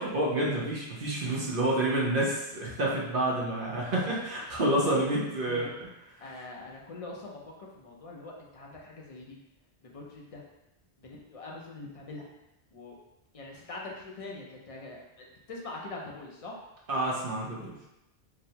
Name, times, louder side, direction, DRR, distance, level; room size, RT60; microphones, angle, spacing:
voice 1, 0.0-5.7 16.9-17.7, right 1 dB, 55° right, -4 dB, 0.9 m, -28 dB
voice 2, 4.9-5.7 6.2-9.4 9.8-10.4 11.0-12.3 12.7-13.0 13.3-16.6, left 2 dB, 45° left, -2 dB, 0.5 m, -43 dB
3.9 x 2.0 x 2.7 m, 0.90 s
omnidirectional pair, 1.1 m